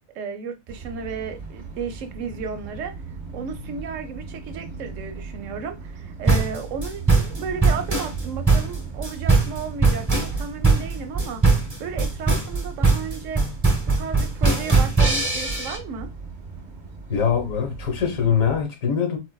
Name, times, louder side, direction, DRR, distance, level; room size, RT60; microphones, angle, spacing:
voice 1, 0.1-2.9 3.3-11.4 11.8-13.4 13.9-16.1, right 5 dB, 75° right, 0.9 m, -33 dB
sound 1, 0.7-18.6, right 5 dB, 45° right, 0.6 m, -38 dB
sound 2, 6.3-15.8, right 3 dB, 15° right, 0.9 m, -20 dB
voice 2, 17.1-19.2, left 7 dB, 75° left, 1.4 m, -23 dB
4.3 x 2.1 x 2.2 m
omnidirectional pair, 1.4 m